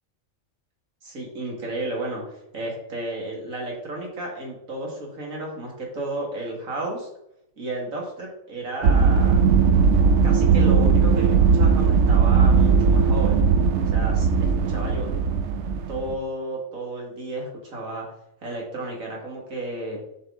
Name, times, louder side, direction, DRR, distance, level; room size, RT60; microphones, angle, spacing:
voice 1, 1.0-7.1 7.6-9.4 10.2-13.5 13.9-15.1 15.9-18.1 18.4-20.0, right 2 dB, 80° right, -1 dB, 2.2 m, -32 dB
sound 1, 8.8-16.1, right 5 dB, 65° right, 0.8 m, -18 dB
7.6 x 5.7 x 3.6 m, 0.80 s
omnidirectional pair, 1.4 m